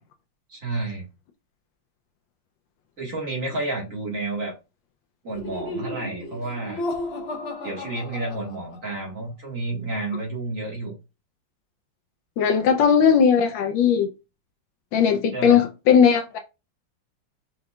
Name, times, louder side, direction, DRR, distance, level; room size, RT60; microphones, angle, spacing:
voice 1, 0.5-1.0 3.0-4.5 5.2-6.8 7.6-10.9 15.3-15.6, right 2 dB, 45° right, 2.0 m, -30 dB
Laughter, 5.3-9.0, left 2 dB, 45° left, 0.9 m, -34 dB
voice 2, 12.4-14.1 14.9-16.4, left 7 dB, 80° left, 1.4 m, -18 dB
4.8 x 4.1 x 2.3 m
omnidirectional pair, 2.1 m